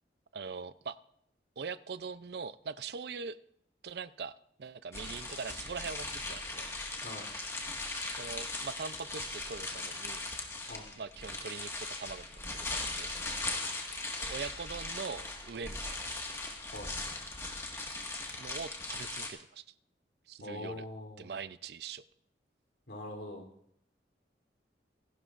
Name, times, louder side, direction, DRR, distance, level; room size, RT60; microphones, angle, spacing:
voice 1, 0.3-1.0 1.6-3.4 3.8-4.3 4.6-6.7 8.1-10.3 11.0-13.3 14.2-16.1 18.3-19.6 20.3-20.8 21.2-22.0, right 5 dB, 65° right, 15 dB, 0.5 m, -42 dB
sound 1, 4.9-19.3, left 2 dB, 15° left, 1.7 m, -39 dB
voice 2, 20.4-21.3 22.9-23.4, left 1 dB, 80° left, 2 dB, 3.4 m, -43 dB
25.5 x 12.0 x 2.5 m, 0.71 s
head